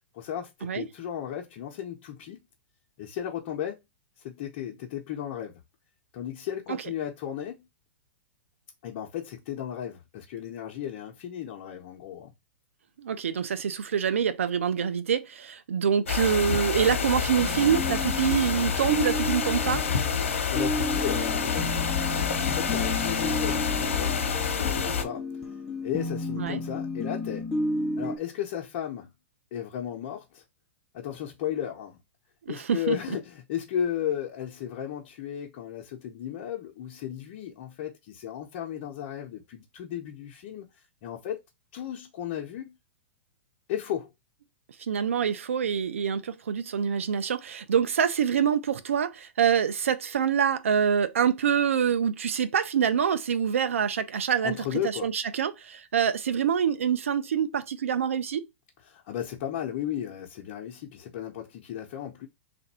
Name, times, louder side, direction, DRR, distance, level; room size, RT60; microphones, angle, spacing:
voice 1, 0.1-2.4 3.0-3.8 4.2-5.6 6.1-7.6 8.8-12.3 20.5-21.9 22.4-24.2 24.5-25.2 25.8-27.5 28.0-29.1 29.5-30.4 30.9-32.0 32.5-40.7 41.0-41.4 41.7-42.8 43.7-44.1 54.4-55.1 58.9-62.3, left 10 dB, 50° left, 0.9 m, -34 dB
voice 2, 13.0-19.8 26.4-26.6 32.5-33.0 44.9-58.4, right 8 dB, 85° right, 0.5 m, -26 dB
sound 1, 16.1-25.0, left 6 dB, 90° left, 0.9 m, -28 dB
sound 2, 17.4-28.2, left 1 dB, 5° left, 0.8 m, -33 dB
3.4 x 2.6 x 4.2 m
hypercardioid pair, 130°, 7 cm